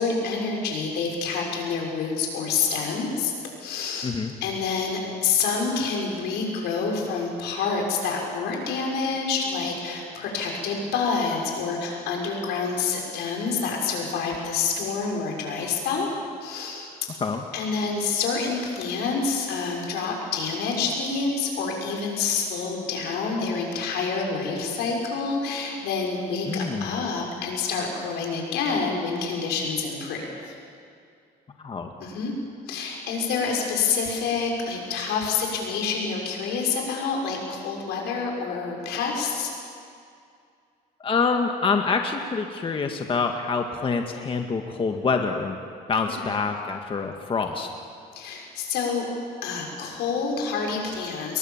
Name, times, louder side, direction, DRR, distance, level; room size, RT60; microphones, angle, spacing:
voice 1, 0.0-3.3 3.6-4.1 4.4-16.1 16.4-16.9 17.5-30.5 32.0-32.3 32.7-39.5 46.1-46.3 48.1-49.1 49.4-51.4, left 5 dB, 85° left, 0 dB, 6.2 m, -27 dB
voice 2, 4.0-4.3 17.2-17.4 26.5-27.0 31.6-31.9 41.0-45.6 45.9-47.7, left 4 dB, 30° left, 4 dB, 1.7 m, -26 dB
30.0 x 22.0 x 7.4 m, 2.4 s
cardioid pair, 110°, 17 cm